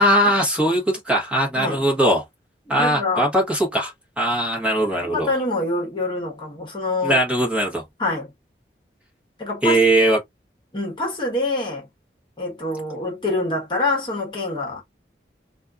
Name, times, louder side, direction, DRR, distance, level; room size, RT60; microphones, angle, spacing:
voice 1, 0.0-2.2 2.7-5.3 7.0-7.8 9.6-10.2, right 1 dB, 5° right, 1.3 m, -20 dB
voice 2, 2.7-3.3 5.1-7.2 8.0-8.3 9.4-9.8 10.7-11.9 12.4-14.8, left 2 dB, 25° left, 1.3 m, -25 dB
4.2 x 2.6 x 2.4 m
head